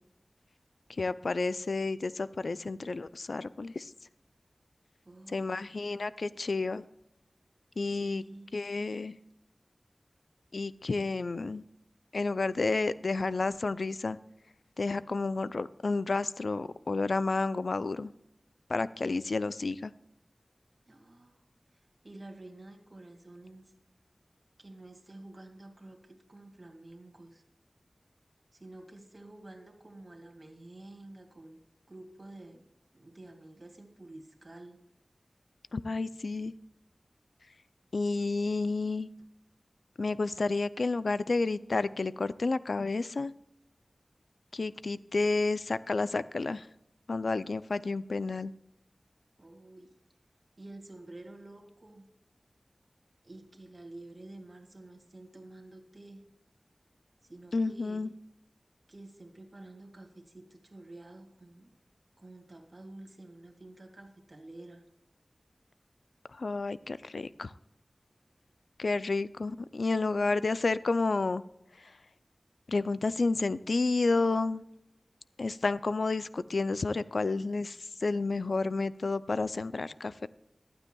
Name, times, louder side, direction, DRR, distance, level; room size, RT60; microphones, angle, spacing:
voice 1, 1.0-3.9 5.3-6.8 7.8-8.2 8.5-9.2 10.5-11.6 12.1-14.2 14.8-18.1 18.7-19.9 35.7-36.5 37.9-39.1 40.0-43.3 44.5-46.7 47.1-48.5 57.5-58.1 66.3-67.5 68.8-71.4 72.7-74.6 75.4-80.3, left 3 dB, 85° left, 16 dB, 0.4 m, -30 dB
voice 2, 5.1-5.9 7.9-8.6 20.9-21.4 21.7-23.7 24.6-27.4 28.5-31.6 31.9-32.6 32.9-34.8 49.4-49.9 50.6-52.0 53.2-56.2 57.3-58.1 58.9-61.7 62.2-64.8, right 2 dB, 45° right, 3 dB, 2.1 m, -50 dB
15.0 x 12.0 x 2.3 m, 0.83 s
wide cardioid pair, 60°, 0 cm